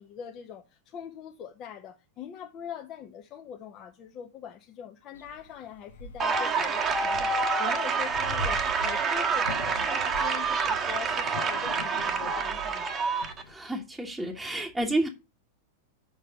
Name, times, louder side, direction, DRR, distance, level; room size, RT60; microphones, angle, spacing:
voice 1, 0.0-13.0, left 8 dB, 35° left, 1.2 m, -42 dB
sound 1, 5.1-13.5, left 2 dB, 65° left, 1.1 m, -42 dB
sound 2, 6.2-13.4, right 5 dB, 25° right, 1.3 m, -27 dB
voice 2, 13.5-15.1, right 1 dB, 5° right, 1.4 m, -30 dB
6.6 x 6.2 x 6.5 m
figure-of-eight pair, 90°, 0 cm